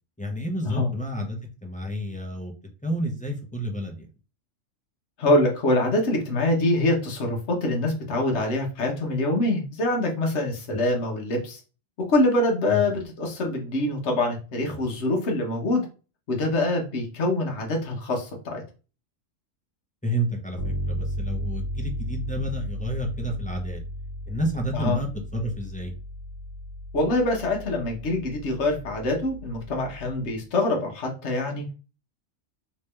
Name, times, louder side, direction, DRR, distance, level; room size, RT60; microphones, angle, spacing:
voice 1, 0.2-2.5 2.8-4.1 12.7-12.8 20.0-23.8 24.3-25.9, equal, 10° left, 0 dB, 0.5 m, -30 dB
voice 2, 5.2-11.6 12.0-15.8 16.3-18.6 24.7-25.0 26.9-31.6, left 1 dB, 60° left, 1 dB, 1.3 m, -25 dB
Bass guitar, 20.6-30.3, equal, 80° left, 1.4 m, -35 dB
3.3 x 2.9 x 3.2 m, 0.34 s
omnidirectional pair, 1.3 m